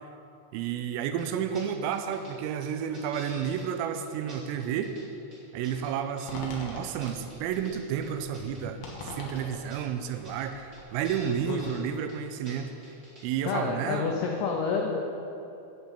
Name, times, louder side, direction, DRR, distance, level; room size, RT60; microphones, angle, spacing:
voice 1, 0.5-4.9 5.5-8.8 9.1-12.7 13.2-14.1, right 8 dB, 90° right, 8 dB, 3.4 m, -31 dB
sound 1, 1.2-1.3 1.5-1.7 1.9-2.3 2.6-3.7 3.9-4.0 4.3-5.0 5.3-6.4 6.7-7.7 8.0-9.1 9.3-9.4 9.7-9.8 10.0-10.5 10.7-10.8 11.0-11.8 12.1-12.2 12.4-12.6 12.8-13.2 13.5-13.6, right 1 dB, 20° right, 2.2 m, -49 dB
sound 2, 6.3-11.5, left 2 dB, 60° left, 2.6 m, -44 dB
voice 2, 11.5-11.8 13.5-15.0, left 5 dB, 90° left, 0 dB, 2.3 m, -29 dB
10.5 x 6.1 x 8.3 m, 2.8 s
omnidirectional pair, 5.9 m